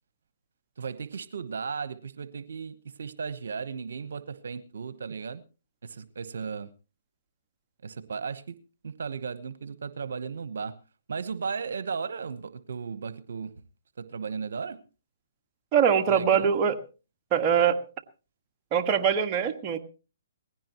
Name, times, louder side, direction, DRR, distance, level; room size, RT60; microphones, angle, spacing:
voice 1, 0.8-5.4 5.8-6.7 7.8-8.5 8.8-10.7 11.1-13.5 14.0-14.8 16.1-16.5, right 5 dB, 75° right, 14 dB, 1.0 m, -35 dB
voice 2, 15.7-16.8 17.3-17.8 18.7-19.8, right 7 dB, 25° right, 4 dB, 1.6 m, -23 dB
19.5 x 16.0 x 3.0 m, 0.34 s
hypercardioid pair, 145°, 0 cm